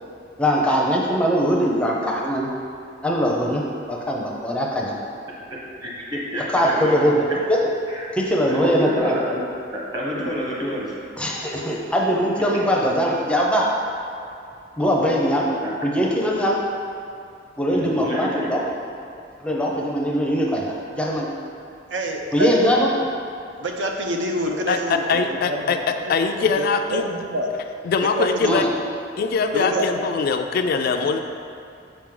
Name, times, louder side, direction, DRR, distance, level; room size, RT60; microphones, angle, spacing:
voice 1, 0.4-2.5 3.0-5.1 6.5-7.6 8.1-9.2 11.2-13.7 14.8-15.5 15.8-16.6 17.6-18.6 19.4-21.3 22.3-22.9 28.5-28.7, equal, 5° left, -2 dB, 0.6 m, -21 dB
voice 2, 5.8-7.1 7.9-8.1 8.5-9.4 9.9-10.9 15.6-15.7 17.7-18.5, equal, 25° right, -4 dB, 1.2 m, -28 dB
voice 3, 21.9-22.9 23.6-25.7 26.0-27.5 28.0-28.5 29.5-29.8 31.1-31.2, right 1 dB, 70° right, 2 dB, 0.6 m, -27 dB
voice 4, 24.7-25.8 26.1-27.0 27.8-28.7 29.2-31.2, left 5 dB, 55° left, 6 dB, 0.3 m, -22 dB
6.0 x 5.2 x 3.7 m, 2.5 s
head